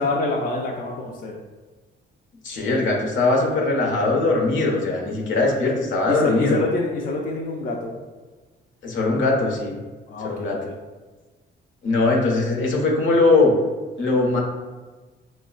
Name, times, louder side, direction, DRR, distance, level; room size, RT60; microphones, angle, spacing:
voice 1, 0.0-1.4 6.1-7.9 10.1-10.7, left 2 dB, 45° left, -1 dB, 0.4 m, -26 dB
voice 2, 2.4-6.6 8.8-9.8 10.2-10.6 11.8-13.5 14.0-14.4, left 3 dB, 75° left, 0 dB, 0.8 m, -20 dB
4.6 x 2.1 x 2.3 m, 1.3 s
cardioid pair, 90°, 20 cm